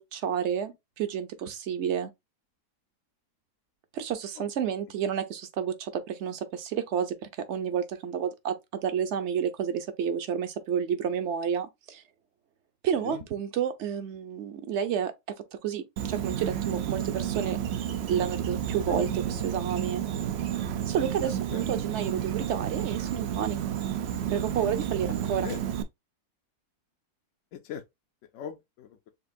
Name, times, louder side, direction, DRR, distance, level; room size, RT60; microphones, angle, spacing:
voice 1, 0.0-2.1 3.9-7.2 7.5-12.0 12.8-15.1 15.6-17.6 18.1-20.0 20.9-23.6 24.3-25.5, right 8 dB, 60° right, 0.8 m, -30 dB
Insect, 16.0-25.8, right 10 dB, 90° right, 0.5 m, -31 dB
voice 2, 18.9-19.2 21.5-21.6 25.4-25.6 27.5-27.8 28.3-29.1, left 9 dB, 65° left, 0.8 m, -39 dB
6.6 x 2.5 x 2.6 m
omnidirectional pair, 1.7 m